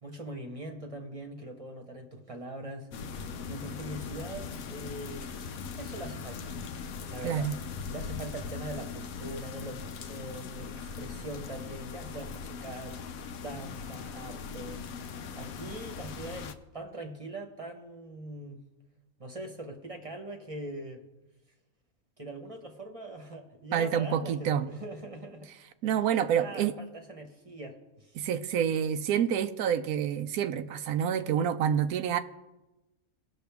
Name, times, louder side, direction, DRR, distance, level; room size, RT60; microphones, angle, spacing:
voice 1, 0.0-2.9 3.5-5.4 5.8-6.6 7.0-7.5 7.9-13.1 13.4-14.9 15.3-18.6 19.2-21.0 22.2-25.5 25.9-26.0 26.4-28.2, right 1 dB, 25° right, 1.1 m, -42 dB
sound 1, 2.9-16.5, left 5 dB, 80° left, 1.1 m, -40 dB
voice 2, 7.2-7.6 23.7-24.7 25.8-26.8 28.2-32.2, right 8 dB, 90° right, 1.1 m, -28 dB
18.5 x 6.4 x 3.5 m
omnidirectional pair, 1.5 m